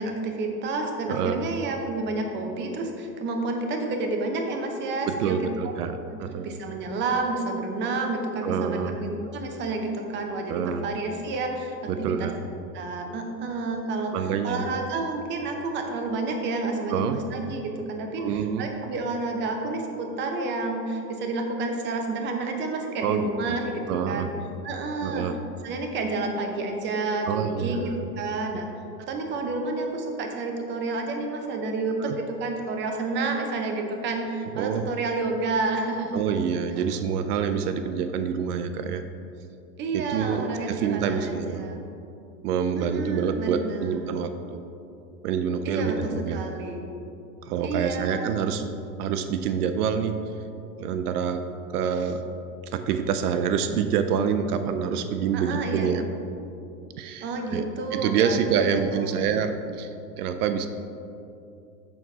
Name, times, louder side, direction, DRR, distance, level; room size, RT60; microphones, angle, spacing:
voice 1, 0.0-5.4 6.1-6.2 6.4-12.3 12.7-24.3 24.6-25.3 25.6-28.7 29.0-36.2 36.8-36.9 39.8-41.8 42.8-44.1 45.6-46.8 47.6-48.4 55.3-55.9 57.2-59.4, right 3 dB, 25° right, 3 dB, 0.7 m, -30 dB
voice 2, 1.1-1.5 5.1-6.6 8.4-9.0 10.5-10.8 11.9-12.4 14.1-14.6 16.9-17.2 18.2-18.7 23.0-23.3 23.9-24.3 25.0-25.3 27.3-27.9 32.0-32.2 34.6-34.9 36.1-39.0 39.9-41.7 42.4-44.6 45.2-46.4 47.4-50.3 50.8-52.3 52.7-56.0 57.0-60.7, right 7 dB, 75° right, 9 dB, 0.6 m, -27 dB
6.9 x 4.1 x 4.8 m, 2.6 s
hypercardioid pair, 130°, 47 cm